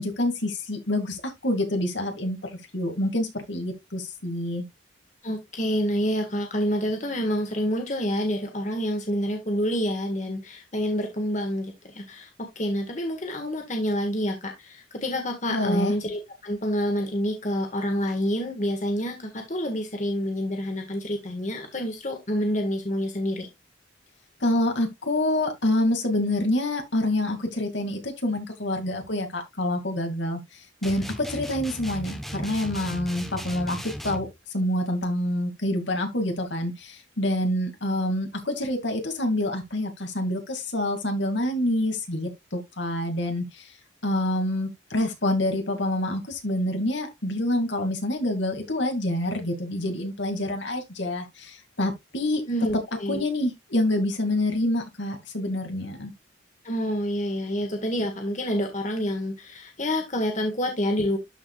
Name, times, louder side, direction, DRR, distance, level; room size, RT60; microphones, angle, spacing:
voice 1, 0.0-4.6 15.5-15.9 24.4-30.4 30.8-33.8 34.0-34.3 34.5-43.7 44.0-52.4 53.1-56.1, left 1 dB, 70° left, 2.3 m, -27 dB
voice 2, 5.2-23.5 52.5-53.2 56.6-61.2, equal, 40° left, 1.6 m, -28 dB
sound 1, 30.8-34.3, equal, ahead, 0.9 m, -36 dB
12.5 x 5.1 x 2.3 m
head